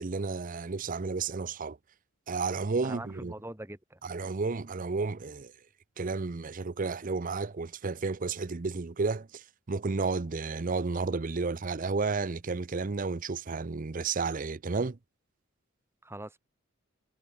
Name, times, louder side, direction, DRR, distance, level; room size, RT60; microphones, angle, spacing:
voice 1, 0.0-1.8 2.3-3.3 4.0-5.5 6.0-15.0, right 4 dB, 40° right, 0.6 m, -32 dB
voice 2, 2.8-4.0 16.0-16.4, right 1 dB, 10° right, 2.1 m, -42 dB
head